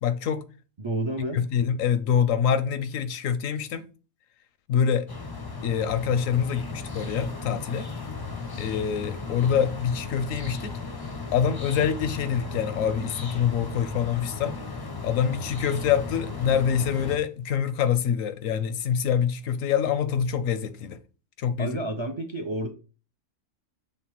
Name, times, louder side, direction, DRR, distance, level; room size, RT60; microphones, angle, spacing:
voice 1, 0.0-0.4 1.3-3.8 4.7-5.1 5.6-7.9 8.6-10.8 11.3-14.6 15.0-21.0 21.4-21.8, left 8 dB, 75° left, 1.0 m, -25 dB
voice 2, 0.8-1.4 21.6-22.7, right 1 dB, 40° right, 0.4 m, -30 dB
sound 1, 5.1-17.2, left 4 dB, 30° left, 0.4 m, -36 dB
6.6 x 3.2 x 4.6 m
omnidirectional pair, 1.4 m